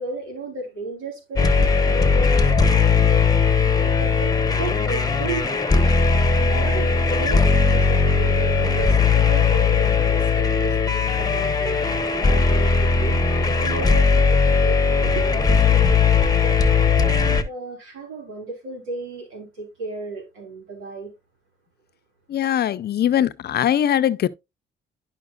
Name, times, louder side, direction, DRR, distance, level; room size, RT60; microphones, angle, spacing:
voice 1, 0.0-6.1 6.3-21.1, right 2 dB, 85° right, 3.5 m, -34 dB
sound 1, 1.4-17.4, left 5 dB, 20° left, 1.0 m, -18 dB
voice 2, 22.3-24.3, left 10 dB, 55° left, 0.6 m, -21 dB
10.5 x 5.8 x 2.4 m
cardioid pair, 90°, 20 cm